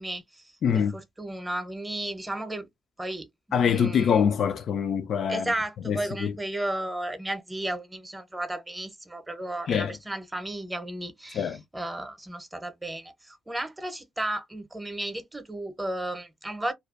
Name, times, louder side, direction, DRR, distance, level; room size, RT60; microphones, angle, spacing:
voice 1, 0.0-0.4 0.7-2.7 3.0-3.3 3.6-4.2 5.3-16.7, right 1 dB, 15° right, 0.7 m, -34 dB
voice 2, 0.6-0.9 3.5-5.5 5.9-6.4 9.7-10.0 11.3-11.6, left 7 dB, 60° left, 0.3 m, -24 dB
2.3 x 2.1 x 2.4 m
cardioid pair, 90°, 0 cm